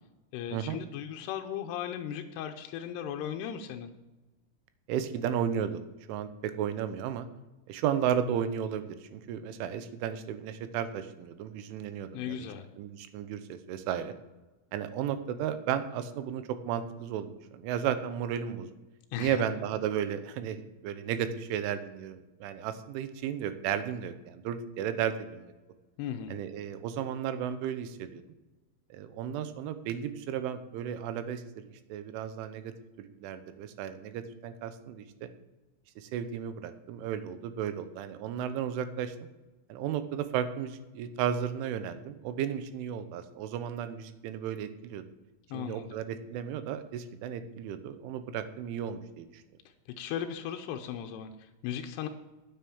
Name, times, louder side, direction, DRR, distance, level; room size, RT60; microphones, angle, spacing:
voice 1, 0.3-3.9 12.1-12.7 19.1-19.5 26.0-26.4 45.5-46.0 50.0-52.1, left 9 dB, 85° left, 5 dB, 2.4 m, -37 dB
voice 2, 4.9-5.8 6.1-7.3 7.7-12.5 12.8-14.1 14.7-18.7 19.2-25.5 26.3-28.2 28.9-35.3 36.0-39.1 39.7-45.0 45.5-49.4, right 9 dB, 80° right, 11 dB, 3.3 m, -34 dB
9.4 x 8.0 x 7.1 m, 1.1 s
omnidirectional pair, 5.6 m